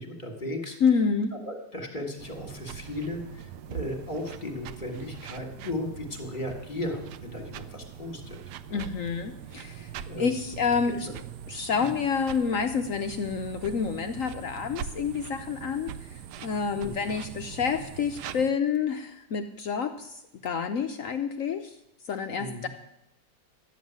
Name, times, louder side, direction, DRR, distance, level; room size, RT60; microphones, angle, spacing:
voice 1, 0.0-0.8 1.5-8.4 8.7-8.8 10.1-10.3 11.1-11.2 11.7-11.9 16.8-17.0 22.4-22.7, left 1 dB, 25° left, 2 dB, 1.9 m, -36 dB
voice 2, 0.8-1.3 8.7-11.1 11.5-21.8 22.1-22.7, left 6 dB, 65° left, 7 dB, 0.8 m, -28 dB
sound 1, 2.2-18.5, right 9 dB, 70° right, 1.1 m, -42 dB
12.0 x 7.3 x 9.3 m, 0.82 s
omnidirectional pair, 2.0 m